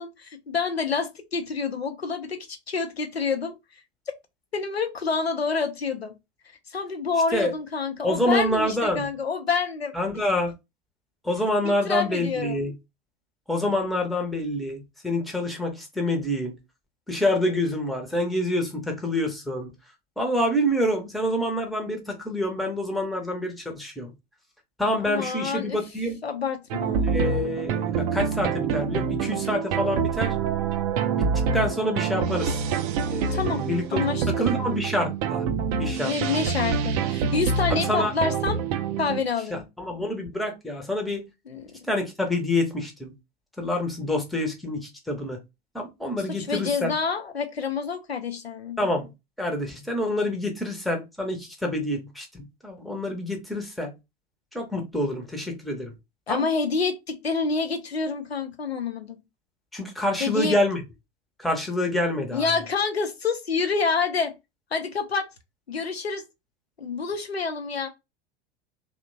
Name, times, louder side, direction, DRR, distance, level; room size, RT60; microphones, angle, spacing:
voice 1, 0.0-3.5 4.5-6.1 6.7-9.9 11.6-12.6 25.0-25.8 26.2-27.1 33.2-33.6 33.9-34.7 36.0-38.6 39.0-39.6 41.5-41.7 46.3-48.8 56.3-59.2 60.2-60.6 62.3-64.3 64.7-65.3 65.7-66.2 66.8-67.9, left 5 dB, 85° left, 0.5 m, -28 dB
voice 2, 8.0-9.1 9.9-10.5 11.2-12.7 13.5-16.5 17.1-19.7 20.2-24.1 24.8-26.2 27.0-30.3 31.2-31.3 31.5-32.6 33.1-34.0 34.4-35.4 35.8-36.1 37.7-38.1 39.5-41.2 41.9-43.1 43.6-45.4 45.7-46.9 48.8-49.1 49.4-53.9 54.5-55.9 56.3-56.5 59.7-60.8 61.4-62.4, left 1 dB, ahead, 0.6 m, -27 dB
sound 1, 26.7-39.2, right 6 dB, 40° right, 0.4 m, -26 dB
2.8 x 2.1 x 2.5 m
figure-of-eight pair, 85°, 30 cm